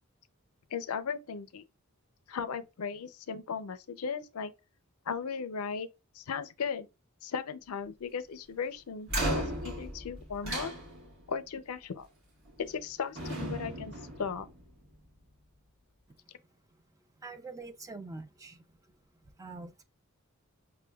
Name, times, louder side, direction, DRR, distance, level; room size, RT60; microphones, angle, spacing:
voice 1, 0.7-1.6 2.3-4.5 5.1-5.9 6.1-6.9 7.2-10.7 11.3-12.1 12.6-13.9 14.2-14.5, left 6 dB, 80° left, 0.5 m, -36 dB
sound 1, 9.1-11.4 12.5-12.8 13.2-14.9, right 1 dB, 60° right, 1.3 m, -36 dB
voice 2, 17.2-18.9 19.2-19.8, right 3 dB, 15° right, 0.3 m, -45 dB
5.4 x 2.2 x 2.2 m
head